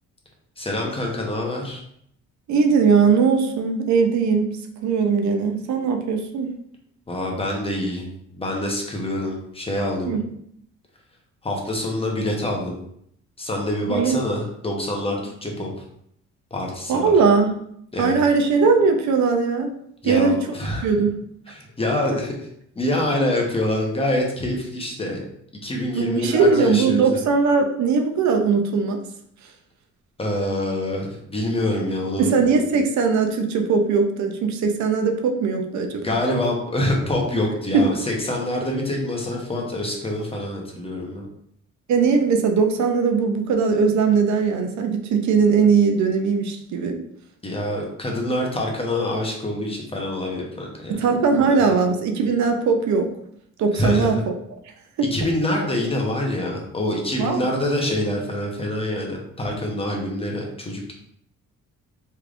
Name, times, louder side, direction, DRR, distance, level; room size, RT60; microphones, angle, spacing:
voice 1, 0.6-1.8 7.1-10.1 11.4-12.8 13.4-15.7 16.5-17.1 17.9-18.2 20.0-20.9 21.5-22.3 22.8-25.2 25.6-27.2 30.2-32.3 35.9-41.3 47.4-50.9 51.4-51.6 53.7-54.2 55.1-60.9, left 1 dB, 20° left, -1 dB, 0.9 m, -25 dB
voice 2, 2.5-4.5 4.8-6.5 10.0-10.2 13.9-14.2 16.9-17.5 18.0-19.7 20.0-20.4 20.8-21.2 25.9-29.0 32.2-36.2 37.7-37.9 41.9-47.0 50.9-53.1 53.6-54.3 55.0-55.1 57.2-57.5, right 5 dB, 70° right, 5 dB, 0.6 m, -20 dB
3.4 x 3.2 x 2.5 m, 0.70 s
cardioid pair, 90°, 30 cm